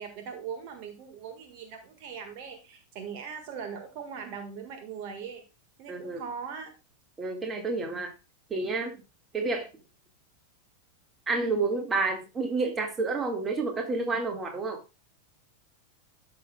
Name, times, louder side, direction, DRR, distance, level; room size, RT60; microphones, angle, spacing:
voice 1, 0.0-5.4 5.8-6.7, right 6 dB, 45° right, 5 dB, 1.6 m, -40 dB
voice 2, 5.9-6.2 7.2-8.2 8.5-9.0 9.3-9.7 11.3-14.8, right 3 dB, 20° right, 4 dB, 1.8 m, -29 dB
13.0 x 6.4 x 2.3 m, 0.29 s
figure-of-eight pair, 90°, 0 cm